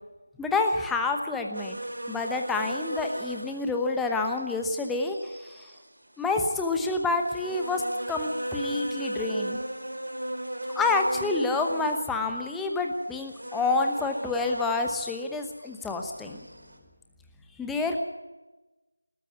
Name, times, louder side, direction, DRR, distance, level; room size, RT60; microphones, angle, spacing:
voice 1, 0.4-1.8 2.1-5.2 6.2-7.8 8.1-9.6 10.7-16.4 17.6-18.0, left 3 dB, 5° left, 3 dB, 1.0 m, -28 dB
sound 1, 1.5-16.8, right 1 dB, 65° right, 5.0 m, -37 dB
21.0 x 13.5 x 9.6 m, 1.1 s
figure-of-eight pair, 165°, 0 cm